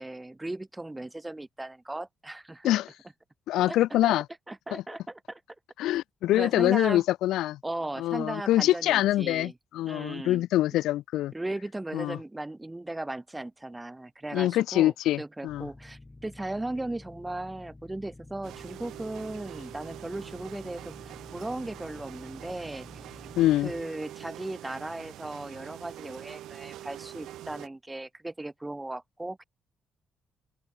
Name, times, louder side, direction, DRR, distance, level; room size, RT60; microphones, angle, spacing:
voice 1, 0.0-2.7 3.6-3.8 4.0-4.2 4.5-5.4 6.3-7.0 7.6-9.5 9.8-10.4 11.3-23.1 23.6-29.4, right 2 dB, 15° right, 1.3 m, -37 dB
voice 2, 3.5-4.2 4.7-4.8 5.8-7.6 8.0-11.3 11.9-12.2 14.3-15.7 23.4-23.7, left 14 dB, 90° left, 0.6 m, -25 dB
sound 1, 15.5-23.8, left 2 dB, 15° left, 3.7 m, -50 dB
sound 2, 18.4-27.7, right 13 dB, 85° right, 2.6 m, -44 dB
cardioid pair, 90°, 0 cm